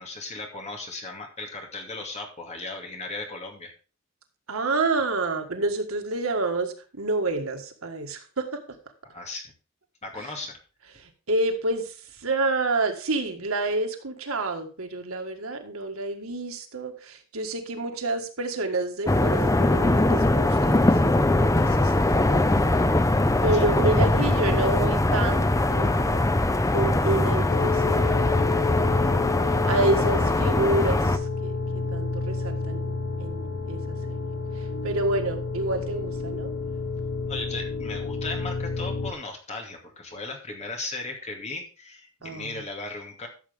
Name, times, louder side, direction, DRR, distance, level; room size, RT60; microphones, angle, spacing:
voice 1, 0.0-3.7 9.1-9.5 10.0-10.6 23.5-23.7 37.3-43.3, left 2 dB, 35° left, 1 dB, 2.4 m, -36 dB
voice 2, 4.5-8.6 10.2-10.3 10.9-22.8 23.4-26.3 26.7-29.3 29.7-36.5 42.2-42.6, right 2 dB, 85° right, 5 dB, 1.7 m, -29 dB
sound 1, 19.1-31.2, left 2 dB, 15° left, 0.6 m, -22 dB
sound 2, 27.5-39.1, left 4 dB, 60° left, 1.0 m, -30 dB
13.5 x 7.0 x 3.6 m, 0.36 s
head